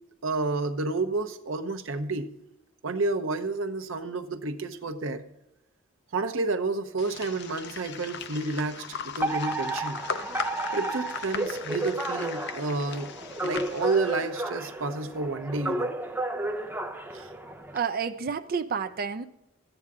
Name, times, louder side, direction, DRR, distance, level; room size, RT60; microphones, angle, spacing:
voice 1, 0.2-2.3 2.8-5.2 6.1-10.0 10.7-13.1 13.4-15.9 17.1-17.3, right 3 dB, 80° right, 8 dB, 0.9 m, -30 dB
sound 1, 7.0-14.3, left 6 dB, 60° left, 0.7 m, -38 dB
Alarm, 9.2-17.8, right 2 dB, 10° right, 0.7 m, -32 dB
voice 2, 17.7-19.3, right 6 dB, 50° right, 9 dB, 0.5 m, -30 dB
13.5 x 9.0 x 3.7 m, 0.89 s
head